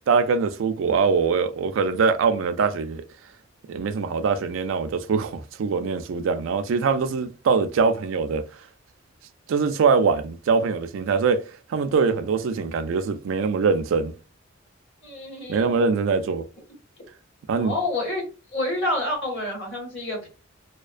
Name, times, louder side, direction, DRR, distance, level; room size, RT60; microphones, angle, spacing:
voice 1, 0.1-3.0 3.7-8.4 9.5-11.4 11.7-14.1 15.5-16.5 17.5-17.7, right 5 dB, 80° right, 0.3 m, -23 dB
voice 2, 15.0-15.7 17.6-18.2 18.5-20.3, left 1 dB, 65° left, 1.4 m, -28 dB
2.3 x 2.2 x 2.4 m
head